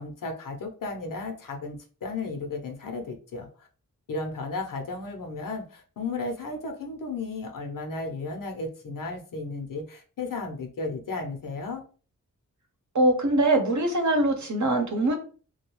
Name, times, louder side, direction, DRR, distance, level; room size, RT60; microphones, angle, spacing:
voice 1, 0.0-3.7 4.1-11.8, left 3 dB, 75° left, 3 dB, 0.7 m, -34 dB
voice 2, 12.9-15.1, right 1 dB, 60° right, 3 dB, 0.9 m, -22 dB
2.4 x 2.2 x 3.1 m, 0.38 s
cardioid pair, 55°, 33 cm